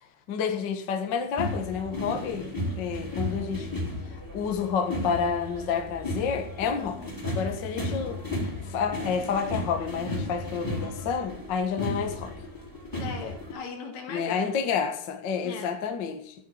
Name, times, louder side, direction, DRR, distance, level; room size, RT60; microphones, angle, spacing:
voice 1, 0.3-2.5 2.7-3.7 4.3-7.0 7.3-12.3 14.1-16.3, left 6 dB, 50° left, 4 dB, 1.3 m, -29 dB
sound 1, 1.4-13.5, left 1 dB, 5° left, 2.7 m, -34 dB
voice 2, 6.7-7.2 13.0-14.4 15.4-15.8, left 5 dB, 85° left, 3 dB, 4.3 m, -39 dB
14.0 x 6.4 x 8.7 m, 0.65 s
omnidirectional pair, 4.5 m